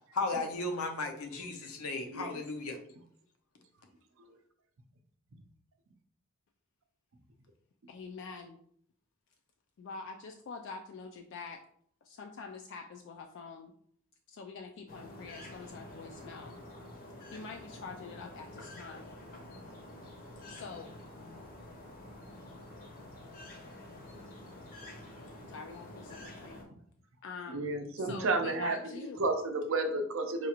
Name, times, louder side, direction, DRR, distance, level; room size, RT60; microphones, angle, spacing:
voice 1, 0.1-2.8, left 3 dB, 85° left, 4 dB, 0.7 m, -35 dB
voice 2, 2.1-2.4 27.5-28.8 29.2-30.5, right 2 dB, 60° right, 5 dB, 0.5 m, -31 dB
voice 3, 7.9-8.6 9.8-11.6 12.1-13.7 14.3-16.6 17.3-19.1 20.5-20.9 25.5-26.6 27.2-27.7 28.0-29.3, left 4 dB, 55° left, 4 dB, 0.3 m, -45 dB
sound 1, 14.9-26.6, left 1 dB, 40° left, 0.7 m, -48 dB
4.8 x 2.4 x 2.9 m, 0.64 s
head